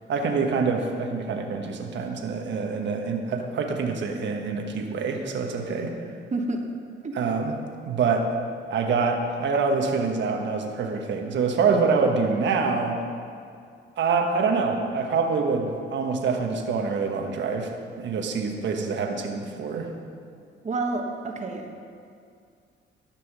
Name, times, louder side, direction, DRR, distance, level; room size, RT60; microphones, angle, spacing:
voice 1, 0.1-5.9 7.1-7.5 7.9-8.4 8.7-13.0 14.0-17.7 18.0-19.9, right 4 dB, 65° right, 3 dB, 1.4 m, -25 dB
voice 2, 6.3-6.6 7.0-7.2 20.6-21.7, right 3 dB, 35° right, 3 dB, 1.4 m, -29 dB
13.5 x 6.1 x 6.1 m, 2.3 s
cardioid pair, 90°, 20 cm